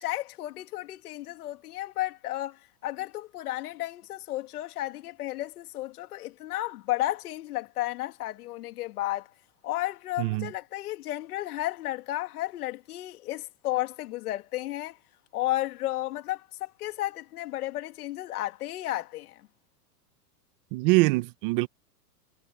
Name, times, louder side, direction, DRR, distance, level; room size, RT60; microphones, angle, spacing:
voice 1, 0.0-9.3 9.6-15.0 15.3-19.5, left 16 dB, 65° left, 2.8 m, -33 dB
voice 2, 10.2-10.5 20.7-21.7, right 23 dB, 35° right, 1.0 m, -24 dB
supercardioid pair, 155°, 49 cm